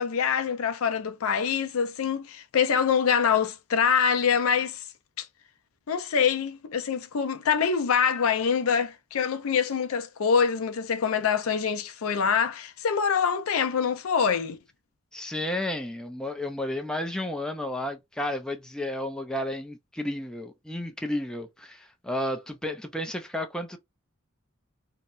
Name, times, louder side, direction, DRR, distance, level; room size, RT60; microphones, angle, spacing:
voice 1, 0.0-4.8 5.2-5.3 5.9-14.6, left 6 dB, 70° left, 0.4 m, -25 dB
voice 2, 15.1-23.8, left 1 dB, 5° left, 0.4 m, -32 dB
2.8 x 2.1 x 2.4 m
head